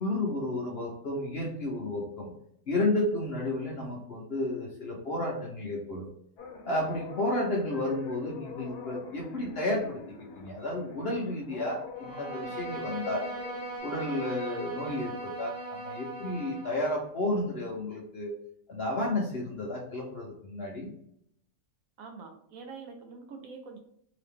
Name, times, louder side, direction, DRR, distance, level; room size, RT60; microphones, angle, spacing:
voice 1, 0.0-2.3 2.7-6.1 6.7-10.0 10.4-13.3 13.8-18.3 18.7-20.9, left 1 dB, 55° left, -2 dB, 0.7 m, -32 dB
sound 1, 6.4-13.8, left 5 dB, 80° left, 1.2 m, -44 dB
Bowed string instrument, 11.9-16.9, right 2 dB, 10° right, 0.8 m, -39 dB
voice 2, 22.0-23.8, right 4 dB, 70° right, 3 dB, 0.9 m, -45 dB
2.9 x 2.8 x 3.5 m, 0.71 s
omnidirectional pair, 1.7 m